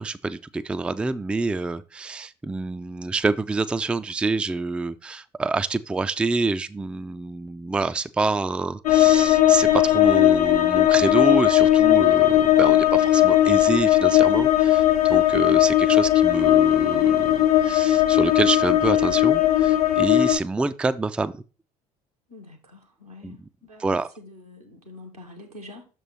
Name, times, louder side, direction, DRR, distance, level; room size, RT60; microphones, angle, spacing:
voice 1, 0.0-21.4 23.2-23.5 23.8-24.1, right 3 dB, 5° right, 0.3 m, -27 dB
sound 1, 8.9-20.4, left 13 dB, 75° left, 0.5 m, -18 dB
voice 2, 22.3-25.8, left 2 dB, 85° right, 1.3 m, -45 dB
6.6 x 4.5 x 4.1 m
figure-of-eight pair, 55°, 19 cm